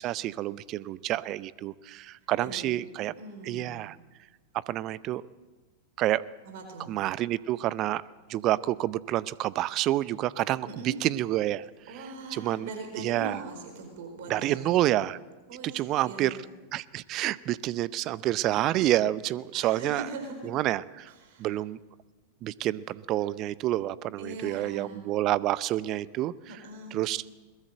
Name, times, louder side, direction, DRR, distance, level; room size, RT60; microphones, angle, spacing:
voice 1, 0.0-3.1 3.4-4.0 4.7-5.2 6.0-6.2 6.9-8.0 8.3-11.6 12.3-12.7 13.0-13.4 14.3-15.2 15.7-16.4 16.7-20.1 20.4-21.1 21.4-21.8 22.4-26.3 26.9-27.3, right 14 dB, 35° right, 20 dB, 0.6 m, -28 dB
voice 2, 2.4-2.7 3.2-3.8 6.4-7.0 10.7-11.0 11.9-14.8 15.5-16.4 19.5-20.4 21.1-21.5 24.2-25.0 26.5-27.0, right 3 dB, 55° right, 4 dB, 4.6 m, -41 dB
21.5 x 20.5 x 7.8 m, 1.3 s
figure-of-eight pair, 90°, 0 cm